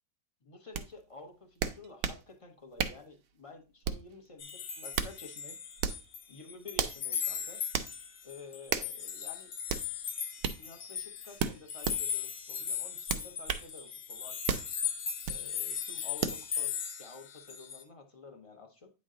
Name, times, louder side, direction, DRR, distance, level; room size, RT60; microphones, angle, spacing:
voice 1, 0.4-5.6 6.3-7.6 8.2-9.5 10.6-14.6 15.3-16.7 17.0-18.9, left 3 dB, 25° left, 4 dB, 0.8 m, -51 dB
sound 1, 0.7-0.9 1.6-2.2 2.8-3.1 3.8-4.1 4.7-5.2 5.8-6.1 6.8-7.0 7.7-7.9 8.7-8.9 9.7-9.9 10.4-10.6 11.4-12.0 13.1-13.7 14.5-14.7 15.2-15.4 16.2-16.4, right 8 dB, 70° right, 0.9 m, -33 dB
sound 2, 4.4-6.2 6.5-17.8, left 8 dB, 60° left, 1.2 m, -38 dB
9.1 x 3.2 x 3.7 m, 0.31 s
omnidirectional pair, 1.6 m